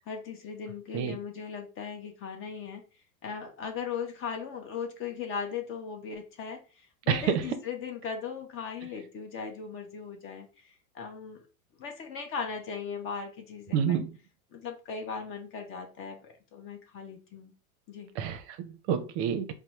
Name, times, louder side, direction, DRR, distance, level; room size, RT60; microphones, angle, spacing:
voice 1, 0.1-2.8 3.2-11.4 11.8-14.0 14.5-17.5 17.9-18.1, left 6 dB, 30° left, 0.6 m, -38 dB
voice 2, 7.1-7.4 13.7-14.1 18.2-19.5, right 8 dB, 50° right, 0.6 m, -28 dB
4.1 x 2.0 x 2.9 m
hypercardioid pair, 110°, 43 cm